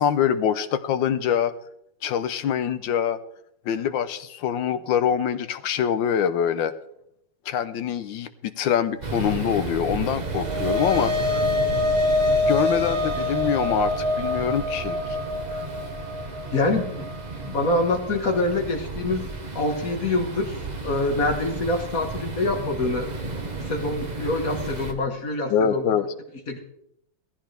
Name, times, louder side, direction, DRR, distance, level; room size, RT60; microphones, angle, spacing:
voice 1, 0.0-1.5 2.0-3.2 3.7-6.7 7.5-11.1 12.5-15.0 25.5-26.0, left 8 dB, 75° left, 12 dB, 1.4 m, -24 dB
sound 1, 9.0-24.9, right 3 dB, 25° right, 1.1 m, -33 dB
sound 2, 10.0-18.5, left 2 dB, 80° right, 2.3 m, -26 dB
voice 2, 16.5-17.1 17.4-19.2 19.5-20.5 20.8-23.1 23.6-25.8 26.5-26.6, left 2 dB, 45° left, 4 dB, 1.9 m, -25 dB
17.5 x 14.5 x 3.4 m, 0.76 s
omnidirectional pair, 2.2 m